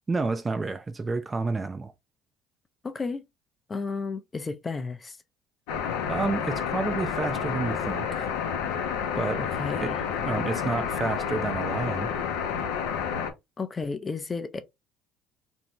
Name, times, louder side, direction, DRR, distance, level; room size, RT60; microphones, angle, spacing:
voice 1, 0.1-1.9 6.1-8.3 9.2-9.5 9.8-9.9 10.2-12.1, right 3 dB, 25° right, 0.4 m, -30 dB
voice 2, 2.8-3.2 3.7-5.2 9.4-10.0 13.6-14.6, left 4 dB, 25° left, 0.5 m, -33 dB
sound 1, 5.7-13.3, left 7 dB, 80° left, 0.6 m, -30 dB
2.6 x 2.1 x 2.9 m
hypercardioid pair, 75°, 0 cm